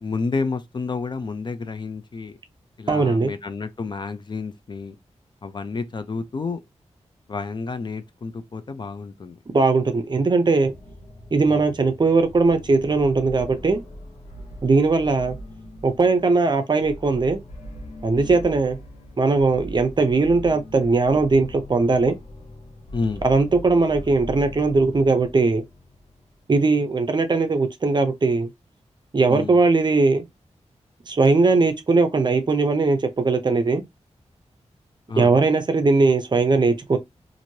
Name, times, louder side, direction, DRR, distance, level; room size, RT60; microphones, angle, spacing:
voice 1, 0.0-2.4 2.8-5.0 5.4-6.6 7.3-9.4 11.5-11.6 22.9-23.2 29.3-29.6 35.1-35.4, left 4 dB, 40° left, 0.4 m, -30 dB
voice 2, 2.9-3.3 9.5-10.7 11.3-13.8 14.6-15.4 15.8-17.4 18.0-18.8 19.2-22.2 23.2-25.6 26.5-28.5 29.1-30.2 31.1-33.8 35.1-37.0, right 3 dB, 40° right, 0.5 m, -19 dB
sound 1, 10.6-26.3, equal, 90° left, 0.9 m, -40 dB
3.1 x 2.5 x 2.7 m
wide cardioid pair, 140°, 12 cm